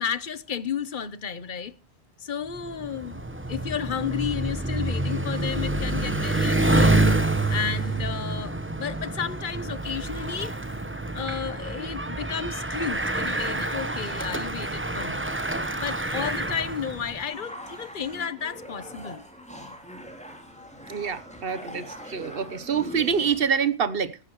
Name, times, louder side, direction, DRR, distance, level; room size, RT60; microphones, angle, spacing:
voice 1, 0.0-1.7 2.2-3.2 3.5-7.0 7.5-10.6 11.1-15.4 15.8-19.2, left 7 dB, 50° left, 1.0 m, -32 dB
Bicycle, 2.5-17.2, right 2 dB, 10° right, 1.0 m, -27 dB
sound 1, 15.3-23.6, equal, 5° left, 3.0 m, -43 dB
voice 2, 20.9-24.2, right 6 dB, 55° right, 1.2 m, -26 dB
15.5 x 15.0 x 3.1 m
omnidirectional pair, 1.2 m